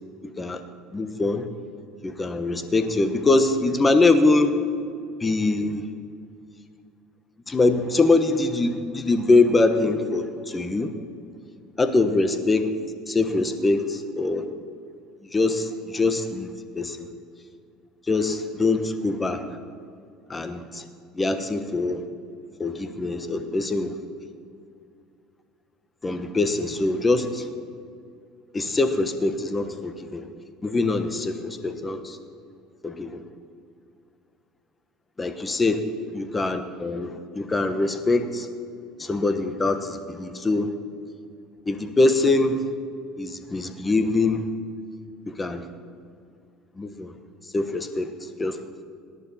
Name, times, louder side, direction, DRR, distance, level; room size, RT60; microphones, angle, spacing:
voice 1, 0.9-1.5 2.0-4.6 5.2-5.8 7.5-10.9 11.8-12.7 13.1-14.5 15.3-17.1 18.1-19.4 20.3-20.8 21.2-22.0 22.6-23.9 26.0-27.5 28.5-30.3 30.6-32.2 32.8-33.2 35.2-35.8 36.1-38.5 39.0-40.7 41.7-42.6 43.2-44.4 45.3-45.6 46.8-47.1 47.5-48.1 48.4-48.6, left 3 dB, 15° left, 9 dB, 1.1 m, -23 dB
18.0 x 11.0 x 4.2 m, 2.3 s
supercardioid pair, 110°, 0 cm